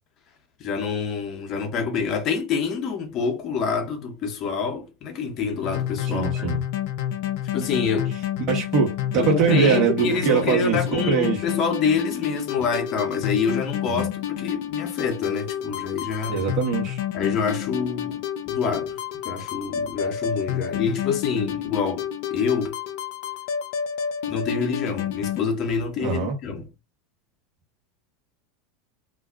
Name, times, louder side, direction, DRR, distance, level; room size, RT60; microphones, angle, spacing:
voice 1, 0.6-6.6 7.5-8.1 9.2-16.4 17.1-19.0 19.2-22.8 24.3-26.7, left 5 dB, 45° left, 0.7 m, -27 dB
sound 1, 5.6-25.4, left 10 dB, 60° left, 0.4 m, -29 dB
voice 2, 6.0-6.6 8.5-11.4 13.9-14.1 16.3-17.0 26.0-26.4, right 6 dB, 50° right, 1.1 m, -22 dB
2.5 x 2.2 x 2.4 m
hypercardioid pair, 85°, 0 cm